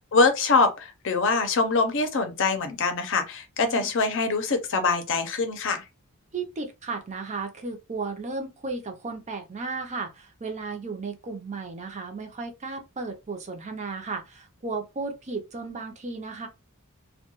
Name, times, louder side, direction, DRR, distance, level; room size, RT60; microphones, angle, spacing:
voice 1, 0.1-5.8, left 4 dB, 60° left, 0.6 m, -24 dB
voice 2, 6.3-16.5, right 4 dB, 35° right, 0.5 m, -34 dB
2.3 x 2.2 x 2.9 m
head